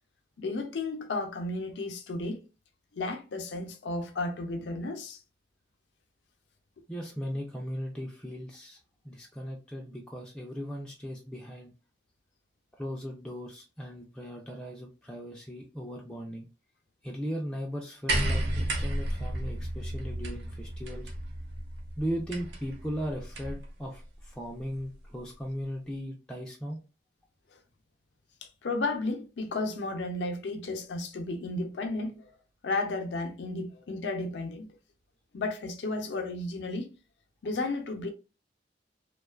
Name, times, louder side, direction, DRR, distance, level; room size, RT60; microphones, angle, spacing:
voice 1, 0.4-2.4 2.9-5.2 28.6-32.3 32.6-34.7 35.3-36.9 37.4-38.1, left 2 dB, 80° left, 0.5 m, -33 dB
voice 2, 6.9-8.8 9.0-11.7 12.8-16.5 17.0-21.1 22.0-26.8, equal, 5° left, 0.3 m, -37 dB
sound 1, 18.1-23.7 24.8-24.9, right 1 dB, 75° right, 0.6 m, -32 dB
2.4 x 2.2 x 2.3 m
head